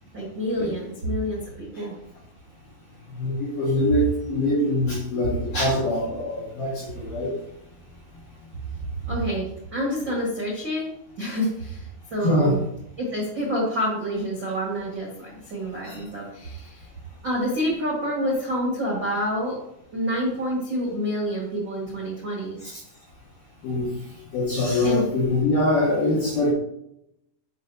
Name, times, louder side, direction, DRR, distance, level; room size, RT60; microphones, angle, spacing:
voice 1, 0.1-2.0 9.1-12.6 13.0-16.9 17.2-19.6 19.9-22.6 24.8-25.0, equal, 70° right, -4 dB, 1.0 m, -28 dB
voice 2, 3.1-7.3 12.2-12.5 15.8-16.0 22.6-22.8 23.6-23.9 24.3-26.5, left 1 dB, 60° left, -6 dB, 2.6 m, -23 dB
10.5 x 5.3 x 2.8 m, 0.78 s
omnidirectional pair, 5.2 m